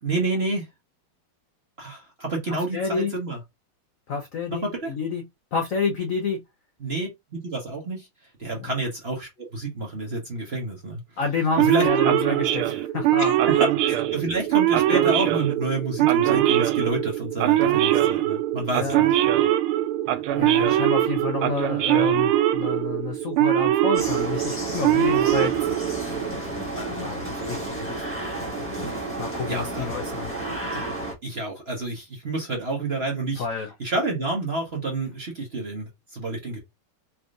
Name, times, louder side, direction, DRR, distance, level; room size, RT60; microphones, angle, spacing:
voice 1, 0.0-0.7 1.8-3.4 4.5-4.9 6.8-8.1 8.4-11.0 11.7-11.8 13.2-13.3 13.6-19.1 29.5-29.9 31.2-33.4 33.8-36.6, right 2 dB, 40° right, 1.0 m, -29 dB
voice 2, 2.5-3.1 4.1-5.2 5.5-6.4 8.6-8.8 11.2-13.3 18.7-19.0 20.3-25.5 26.8-28.0 29.2-30.6 33.4-33.7, left 5 dB, 70° left, 0.7 m, -29 dB
Male speech man speaking / Siren, 11.6-26.3, right 13 dB, 80° right, 1.4 m, -22 dB
sound 1, 23.9-31.1, right 2 dB, 10° left, 1.1 m, -32 dB
4.3 x 3.5 x 2.5 m
omnidirectional pair, 2.4 m